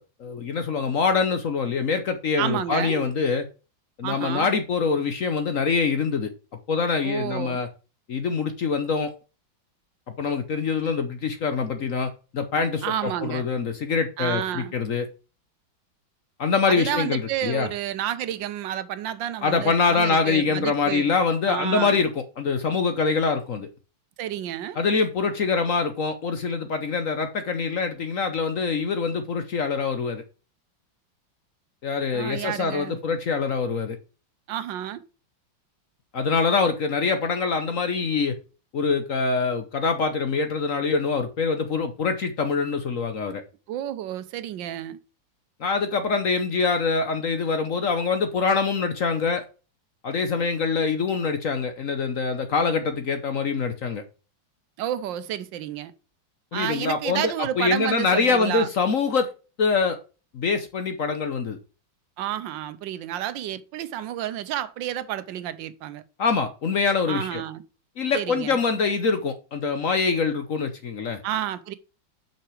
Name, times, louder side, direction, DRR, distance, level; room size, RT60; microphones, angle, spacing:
voice 1, 0.0-3.5 4.0-6.3 6.7-7.7 8.1-9.1 10.2-15.1 16.4-17.7 19.4-23.7 24.8-30.2 31.8-34.0 36.1-38.4 38.7-43.4 45.6-49.4 50.0-54.0 56.5-59.3 59.6-60.0 60.3-61.6 66.2-67.4 68.0-71.2, left 5 dB, 55° left, 1.0 m, -24 dB
voice 2, 2.4-3.1 4.0-4.5 7.0-7.6 12.8-13.5 14.2-14.7 16.7-21.1 21.5-22.0 24.2-24.8 32.1-33.0 34.5-35.0 43.7-45.0 54.8-55.9 56.5-58.7 62.2-66.0 67.1-67.6 68.1-68.6 71.2-71.7, right 11 dB, 75° right, 1.3 m, -30 dB
5.9 x 5.9 x 4.8 m
omnidirectional pair, 2.1 m